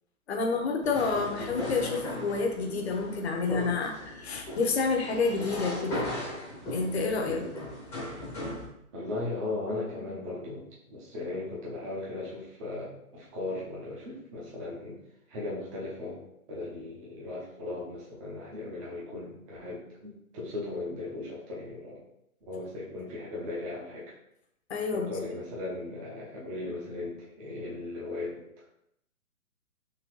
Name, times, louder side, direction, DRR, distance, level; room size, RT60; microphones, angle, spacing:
voice 1, 0.3-6.2 6.7-7.5 24.7-25.1, left 4 dB, 45° left, 3 dB, 0.8 m, -29 dB
sound 1, 0.8-8.6, left 1 dB, 5° left, 0.8 m, -37 dB
voice 2, 8.9-15.0 15.3-16.2 16.5-22.0 22.5-24.1 24.9-28.4, left 2 dB, 25° right, -5 dB, 0.8 m, -37 dB
3.9 x 3.0 x 3.1 m, 0.78 s
hypercardioid pair, 140°, 43 cm